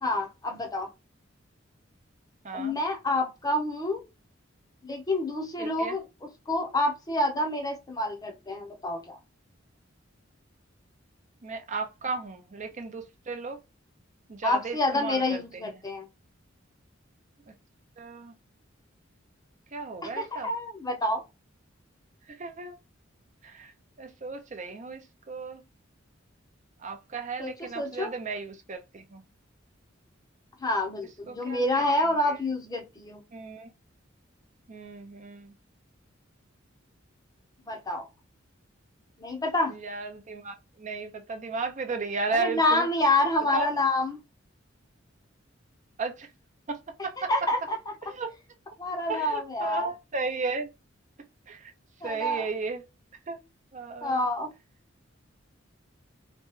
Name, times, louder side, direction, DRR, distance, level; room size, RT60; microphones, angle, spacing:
voice 1, 0.0-0.9 2.5-4.0 4.8-9.2 14.4-16.1 20.0-21.2 27.4-28.1 30.6-33.2 37.7-38.1 39.2-39.8 42.3-44.2 47.3-47.8 48.8-49.9 52.0-52.5 54.0-54.5, left 2 dB, 20° left, 0.7 m, -28 dB
voice 2, 2.4-2.8 5.6-6.0 11.4-13.6 14.3-15.4 18.0-18.3 19.7-20.5 22.4-22.8 23.4-23.7 24.0-25.6 26.8-29.2 31.3-32.3 33.3-33.7 34.7-35.5 39.8-42.9 43.5-43.7 46.0-46.3 46.7-47.3 48.2-48.3 49.1-50.7 51.5-51.7 52.0-52.8 53.3-53.4 53.7-54.2, right 4 dB, 40° right, 0.5 m, -34 dB
2.9 x 2.2 x 3.1 m
head